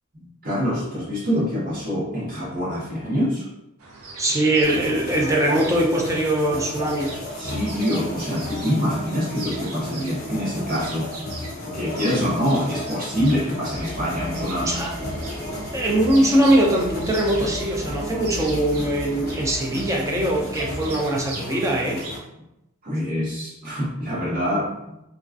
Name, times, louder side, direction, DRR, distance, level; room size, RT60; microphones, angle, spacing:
voice 1, 0.1-3.5 7.4-11.1 11.6-14.8 22.8-24.9, equal, 40° right, -8 dB, 1.0 m, -25 dB
sound 1, 3.8-22.1, right 3 dB, 85° right, 0.5 m, -40 dB
voice 2, 4.2-7.1 12.1-12.2 14.6-14.9 15.7-22.0, right 1 dB, 15° right, -2 dB, 0.3 m, -21 dB
sound 2, 4.6-22.2, left 1 dB, 45° left, 0.6 m, -34 dB
sound 3, 13.7-20.9, right 1 dB, 65° right, 0.9 m, -36 dB
2.3 x 2.3 x 2.3 m, 0.87 s
head